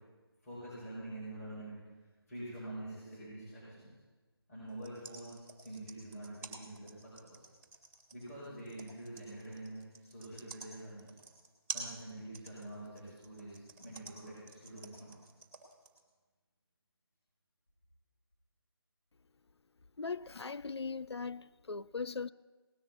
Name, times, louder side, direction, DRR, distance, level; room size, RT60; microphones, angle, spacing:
voice 1, 0.4-1.7 2.3-3.9 4.5-7.4 8.1-11.0 11.7-15.1, right 1 dB, 35° left, 6.5 m, -46 dB
sound 1, 4.7-16.0, right 4 dB, 30° right, 2.4 m, -48 dB
voice 2, 20.0-22.3, left 4 dB, 85° left, 0.5 m, -39 dB
19.0 x 6.7 x 9.1 m
figure-of-eight pair, 165°, 13 cm